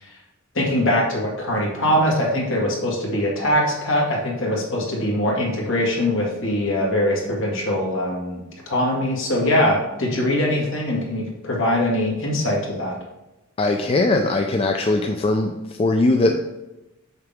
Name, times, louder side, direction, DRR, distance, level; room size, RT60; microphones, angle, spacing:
voice 1, 0.5-13.0, left 1 dB, 65° left, -2 dB, 2.0 m, -22 dB
voice 2, 13.6-15.5 15.8-16.4, left 2 dB, 30° left, 3 dB, 0.4 m, -20 dB
6.6 x 5.9 x 3.6 m, 0.98 s
head